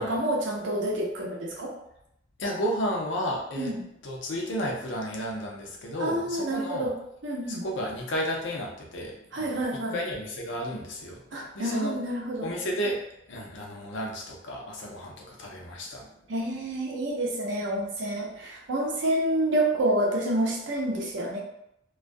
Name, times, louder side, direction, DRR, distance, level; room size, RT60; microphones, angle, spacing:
voice 1, 0.0-1.7 3.6-3.8 6.0-6.9 7.2-7.6 9.3-9.9 11.3-12.5 16.3-21.4, right 1 dB, 70° right, -2 dB, 0.6 m, -28 dB
voice 2, 2.4-3.7 4.0-6.9 7.5-9.6 9.9-12.0 12.4-16.2, equal, 75° left, -1 dB, 0.6 m, -32 dB
2.3 x 2.1 x 2.5 m, 0.78 s
head